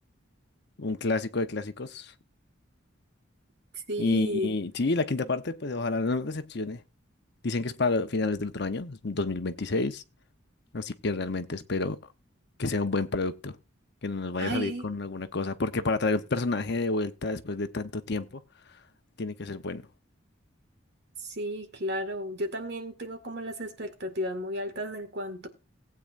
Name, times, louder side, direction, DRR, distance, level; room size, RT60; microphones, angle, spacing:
voice 1, 0.8-2.1 4.0-6.8 7.4-10.0 10.7-12.0 12.6-13.6 14.0-18.4 19.2-19.8, left 3 dB, 55° left, 0.9 m, -29 dB
voice 2, 3.7-4.5 14.4-14.9 21.2-25.5, equal, 55° right, 2.0 m, -33 dB
18.5 x 8.6 x 2.6 m
head